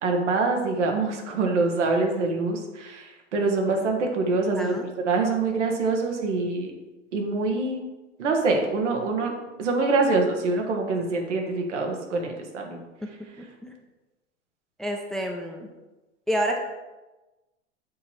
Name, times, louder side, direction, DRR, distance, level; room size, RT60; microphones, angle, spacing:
voice 1, 0.0-6.7 7.1-7.8 8.2-12.8, right 3 dB, 75° right, 2 dB, 1.6 m, -25 dB
voice 2, 4.6-4.9 13.0-13.1 13.4-13.8 14.8-15.7 16.3-16.6, equal, ahead, 2 dB, 0.7 m, -29 dB
7.1 x 4.2 x 4.6 m, 1.1 s
hypercardioid pair, 95°, 36 cm